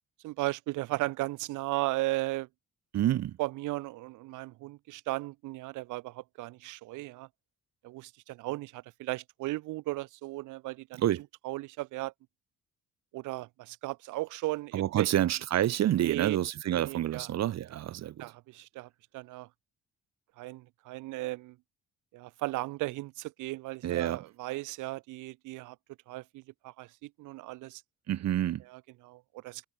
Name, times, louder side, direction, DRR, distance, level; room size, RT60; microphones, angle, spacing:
voice 1, 0.2-2.5 3.4-7.3 7.8-11.0 11.4-12.1 13.1-15.1 16.0-16.4 16.7-17.3 18.2-19.5 20.4-21.6 22.1-25.8 26.1-27.8 28.6-29.7, right 19 dB, 85° right, 0.5 m, -36 dB
voice 2, 2.9-3.3 11.0-11.2 14.7-18.2 23.8-24.2 28.1-28.6, right 12 dB, 60° right, 0.8 m, -28 dB
cardioid pair, 90°, 30 cm